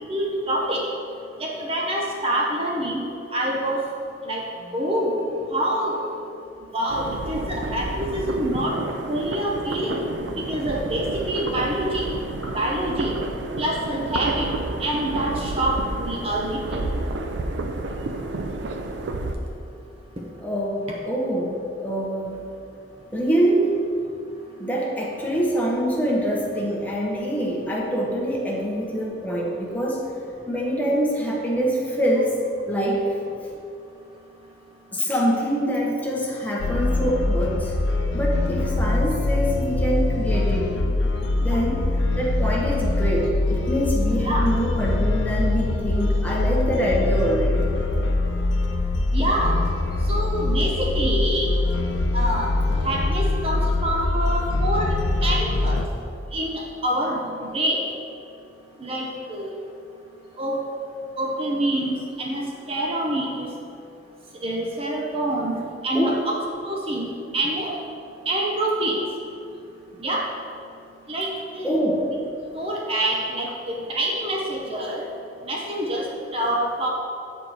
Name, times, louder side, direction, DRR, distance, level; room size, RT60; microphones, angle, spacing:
voice 1, 0.1-0.8 1.4-3.8 4.3-4.4 4.7-5.1 5.5-6.0 6.7-8.7 9.1-10.0 10.5-12.1 12.5-13.1 13.6-14.5 14.8-16.8 41.4-41.6 44.3-44.5 49.1-49.6 50.1-51.5 52.1-52.5 52.8-54.9 55.2-55.8 56.3-57.8 58.8-59.5 60.4-60.6 61.2-62.4 62.7-63.5 64.4-65.6 65.8-66.4 66.7-67.7 68.3-69.0 70.0-70.2 71.1-71.3 71.5-71.7 72.0-72.1 72.5-75.0 75.5-76.1 76.3-76.9, right 1 dB, 35° right, -2 dB, 0.7 m, -26 dB
sound 1, 6.9-19.3, right 2 dB, 80° right, 0.5 m, -30 dB
voice 2, 20.4-20.8 21.1-22.4 23.1-23.7 24.6-30.0 30.5-32.3 32.7-33.0 34.9-37.7 38.1-41.0 41.4-41.8 42.2-47.6 65.9-66.2 71.6-72.0, equal, 10° left, -3 dB, 1.0 m, -24 dB
sound 2, 36.6-55.9, left 2 dB, 85° left, 0.5 m, -23 dB
7.7 x 4.6 x 4.0 m, 2.5 s
head